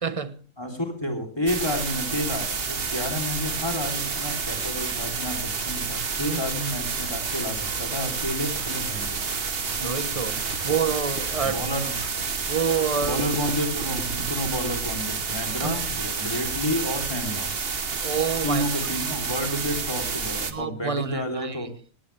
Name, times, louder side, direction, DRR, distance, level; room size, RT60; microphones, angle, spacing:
voice 1, 0.0-0.4 6.2-6.4 9.8-11.6 12.5-13.2 15.6-16.0 18.0-18.9 20.5-21.7, right 6 dB, 25° right, 1.0 m, -28 dB
voice 2, 0.6-9.2 11.4-12.0 13.0-17.6 18.4-21.7, equal, 20° left, 3.5 m, -30 dB
sound 1, 1.5-20.5, right 5 dB, 45° right, 1.4 m, -29 dB
sound 2, 4.0-13.1, left 1 dB, 65° left, 4.0 m, -46 dB
19.0 x 17.0 x 3.4 m
omnidirectional pair, 1.4 m